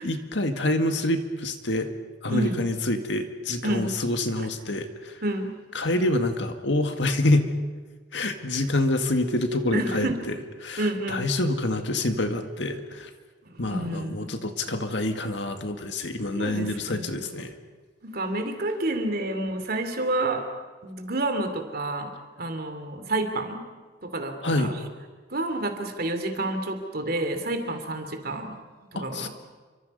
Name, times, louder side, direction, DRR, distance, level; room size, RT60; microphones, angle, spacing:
voice 1, 0.0-1.9 2.2-5.2 5.7-7.5 8.1-10.1 10.6-13.1 13.6-17.6 24.4-24.7 29.0-29.3, left 1 dB, 70° left, 6 dB, 2.0 m, -26 dB
voice 2, 2.3-2.7 3.6-3.9 4.4-4.5 5.2-5.6 9.7-10.2 10.8-11.3 13.4-14.3 16.3-17.2 18.0-20.5 20.8-22.1 22.4-23.6 24.0-24.7 25.3-28.6 28.9-29.3, right 2 dB, 55° right, 7 dB, 2.9 m, -29 dB
28.5 x 24.5 x 5.5 m, 1.4 s
head